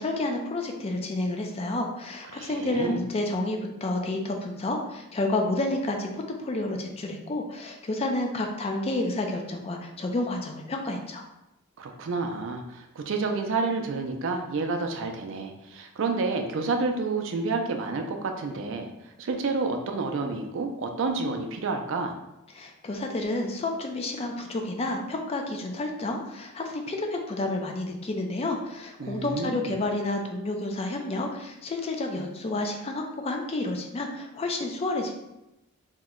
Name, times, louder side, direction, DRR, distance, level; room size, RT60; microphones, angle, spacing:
voice 1, 0.0-11.2 22.5-35.1, left 2 dB, 30° left, 2 dB, 0.3 m, -30 dB
voice 2, 2.3-3.0 11.8-18.9 19.2-22.2 29.0-29.8, right 3 dB, 60° right, 4 dB, 0.4 m, -29 dB
2.8 x 2.1 x 3.6 m, 0.92 s
head